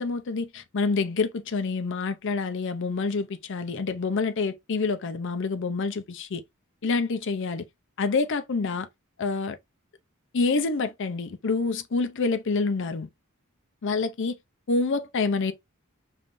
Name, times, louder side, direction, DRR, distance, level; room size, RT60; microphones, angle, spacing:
voice 1, 0.0-6.4 6.8-7.7 8.0-8.9 9.2-9.6 10.3-13.1 13.8-14.4 14.7-15.5, left 4 dB, 60° left, 0.6 m, -27 dB
5.3 x 3.2 x 2.5 m
head